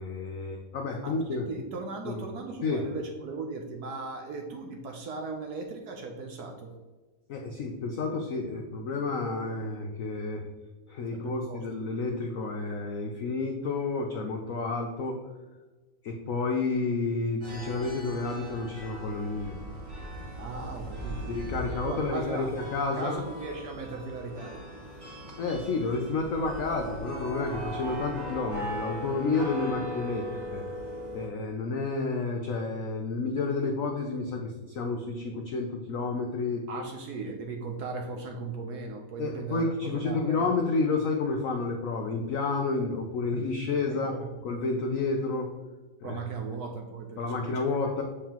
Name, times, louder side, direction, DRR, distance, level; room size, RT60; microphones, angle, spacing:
voice 1, 0.0-1.5 2.0-2.2 2.6-2.8 7.3-10.4 10.9-15.2 16.0-19.5 21.3-23.2 25.4-30.6 31.1-36.6 39.2-44.1 44.4-45.5 46.0-46.2 47.2-48.0, left 3 dB, 75° left, 2 dB, 0.7 m, -30 dB
voice 2, 1.0-6.7 11.1-11.7 20.4-21.3 21.8-22.5 22.9-24.7 36.7-40.5 43.9-44.3 46.0-47.6, right 4 dB, 70° right, 3 dB, 1.0 m, -38 dB
sound 1, 17.4-31.3, right 1 dB, 35° right, 2.1 m, -39 dB
7.3 x 4.9 x 2.9 m, 1.2 s
omnidirectional pair, 2.1 m